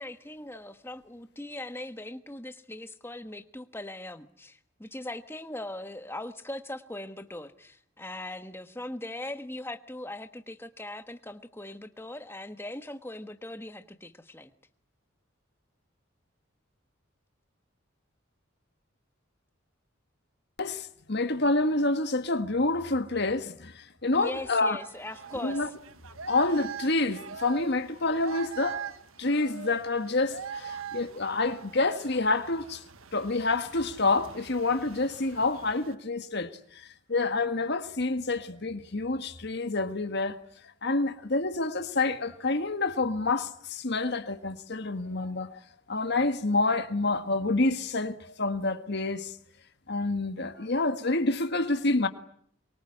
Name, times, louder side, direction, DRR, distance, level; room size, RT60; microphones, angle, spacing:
voice 1, 0.0-14.5 24.1-25.6, left 1 dB, 10° left, 1.3 m, -40 dB
voice 2, 20.6-24.8 25.4-25.7 26.3-28.9 29.2-32.8 33.1-40.4 40.8-45.6 45.9-49.3 49.9-52.1, left 2 dB, 55° left, 1.6 m, -28 dB
sound 1, 24.8-35.9, right 6 dB, 85° right, 1.3 m, -42 dB
24.0 x 23.5 x 9.9 m
head